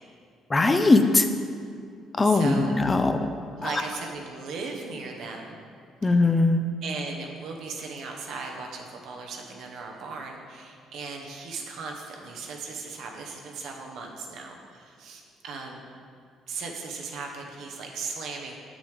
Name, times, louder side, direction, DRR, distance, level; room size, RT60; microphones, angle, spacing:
voice 1, 0.5-1.3 2.2-3.2 3.6-3.7 6.0-6.7, left 3 dB, 25° left, 8 dB, 0.5 m, -20 dB
voice 2, 2.2-2.7 3.5-5.6 6.0-6.1 6.8-15.8 16.5-18.6, right 4 dB, 70° right, 1 dB, 0.9 m, -37 dB
7.6 x 6.1 x 3.4 m, 2.2 s
hypercardioid pair, 55°, 0 cm